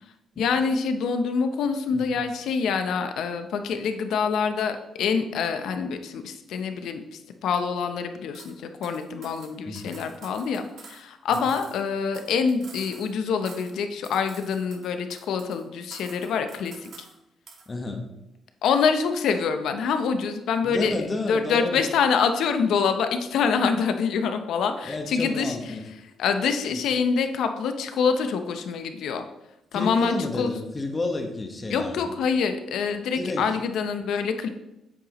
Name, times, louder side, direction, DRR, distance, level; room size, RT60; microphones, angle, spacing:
voice 1, 0.4-7.0 7.4-16.9 18.6-20.9 21.3-25.6 26.2-29.2 29.7-30.5 31.7-34.5, left 6 dB, 75° left, 7 dB, 0.8 m, -25 dB
sound 1, 8.3-8.5 8.8-11.0 11.3-13.2 13.5-13.8 14.0-15.6 15.9-17.2 17.5-17.7, right 5 dB, 65° right, 1.9 m, -48 dB
voice 2, 17.7-18.0 20.6-21.8 24.9-25.8 29.7-32.1 33.1-33.5, left 2 dB, 30° left, 4 dB, 1.4 m, -31 dB
9.0 x 7.6 x 3.1 m, 0.91 s
cardioid pair, 90°, 0 cm